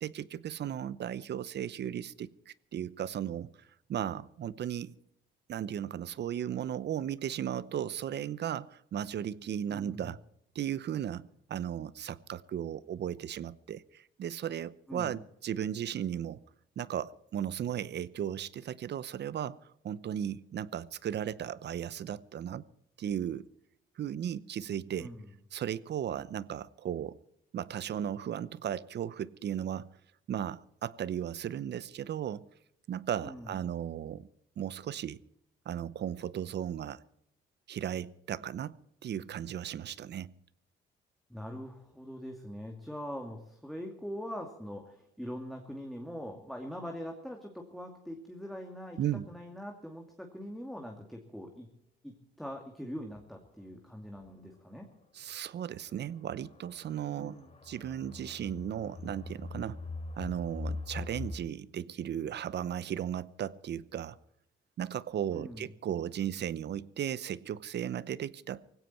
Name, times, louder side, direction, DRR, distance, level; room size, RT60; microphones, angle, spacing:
voice 1, 0.0-3.5 3.9-5.0 5.5-10.2 10.5-16.4 16.8-19.6 19.8-22.6 23.0-23.5 24.0-25.1 25.5-27.2 27.5-29.9 30.3-32.5 32.9-34.3 34.6-35.2 35.7-37.0 37.7-38.7 39.0-40.3 49.0-49.3 55.1-57.4 57.6-59.8 60.2-64.2 64.8-68.6, right 10 dB, 60° right, 0.8 m, -36 dB
voice 2, 9.7-10.1 14.9-15.2 25.0-25.3 33.2-33.6 41.3-49.0 49.3-51.7 52.0-54.9 57.2-57.5 65.3-65.7, equal, ahead, 2.5 m, -42 dB
sound 1, 53.6-53.7 54.2-54.3 55.2-61.4, left 3 dB, 35° left, 3.3 m, -43 dB
18.5 x 16.5 x 4.5 m
cardioid pair, 90°, 20 cm